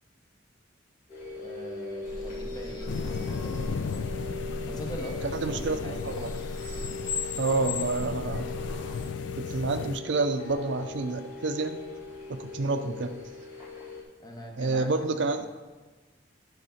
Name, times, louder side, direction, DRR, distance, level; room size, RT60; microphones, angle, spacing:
sound 1, 1.1-14.0, left 4 dB, 45° left, 2.2 m, -40 dB
voice 1, 1.4-3.8 4.7-6.0 12.8-13.0 14.2-14.9 15.4-15.5, equal, 20° left, 1 dB, 1.0 m, -42 dB
sound 2, 2.0-9.1, left 3 dB, 85° left, 1.4 m, -38 dB
sound 3, 2.9-10.0, left 6 dB, 65° left, 0.3 m, -36 dB
voice 2, 5.3-6.3 7.4-8.5 9.3-11.8 12.3-13.1 14.6-15.5, right 3 dB, 65° right, 8 dB, 0.5 m, -29 dB
9.6 x 3.9 x 5.7 m, 1.3 s
head